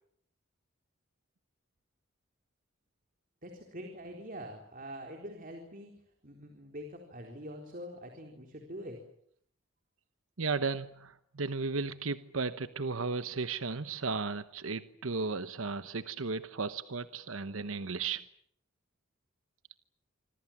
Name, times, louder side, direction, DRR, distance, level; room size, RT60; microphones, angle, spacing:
voice 1, 3.4-6.0 6.2-9.0, equal, 40° right, 3 dB, 4.0 m, -44 dB
voice 2, 10.4-18.2, right 4 dB, 85° right, 12 dB, 1.1 m, -35 dB
26.5 x 25.5 x 7.4 m, 0.68 s
head